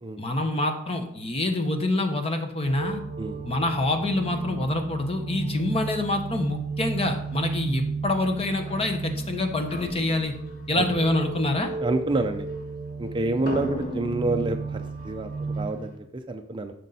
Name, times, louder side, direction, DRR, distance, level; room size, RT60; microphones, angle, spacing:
voice 1, 0.2-3.0 3.4-10.3 10.7-11.7, left 2 dB, 30° left, 5 dB, 1.1 m, -26 dB
sound 1, 2.6-15.7, right 4 dB, 50° right, 1.4 m, -34 dB
voice 2, 3.2-3.5 10.7-10.9 11.8-12.5 13.0-16.7, right 2 dB, 20° right, 6 dB, 0.5 m, -28 dB
sound 2, 7.3-7.6 8.2-9.4 9.7-13.1 13.4-16.0, equal, 45° left, 1.8 m, -39 dB
12.0 x 6.3 x 4.1 m, 0.77 s
head